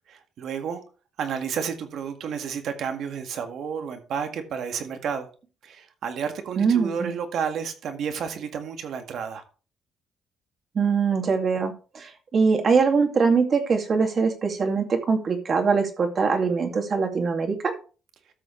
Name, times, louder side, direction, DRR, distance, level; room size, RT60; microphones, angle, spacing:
voice 1, 0.1-0.8 1.2-5.3 5.6-9.4, right 7 dB, 70° right, 1.8 m, -31 dB
voice 2, 6.6-7.1 10.7-17.7, right 5 dB, 45° right, 2.3 m, -22 dB
13.5 x 6.3 x 3.2 m
cardioid pair, 90°, 0 cm